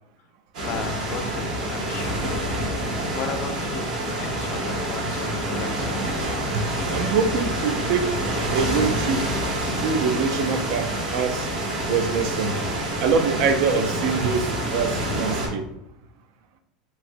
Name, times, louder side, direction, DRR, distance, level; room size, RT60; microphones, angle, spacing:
sound 1, 0.5-15.5, right 1 dB, 75° right, 1.1 m, -27 dB
voice 1, 0.6-2.4 2.9-6.1, left 5 dB, 50° left, 5 dB, 0.5 m, -35 dB
voice 2, 6.5-8.1 8.5-9.2 9.8-11.5 11.9-12.7 13.0-15.6, right 5 dB, 60° right, 7 dB, 0.4 m, -24 dB
3.1 x 2.6 x 2.5 m, 0.83 s
hypercardioid pair, 95°, 4 cm